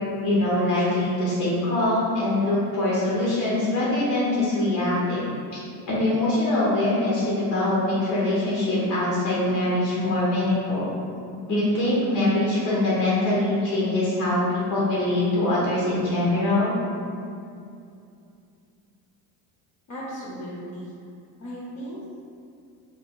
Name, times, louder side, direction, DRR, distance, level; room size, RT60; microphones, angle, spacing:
voice 1, 0.2-5.2 5.5-5.6 5.9-10.9 11.5-16.8, left 1 dB, 80° left, -8 dB, 1.3 m, -23 dB
voice 2, 19.9-20.9 21.4-22.2, equal, 35° left, -5 dB, 0.6 m, -36 dB
3.7 x 2.3 x 3.7 m, 2.5 s
cardioid pair, 110°, 49 cm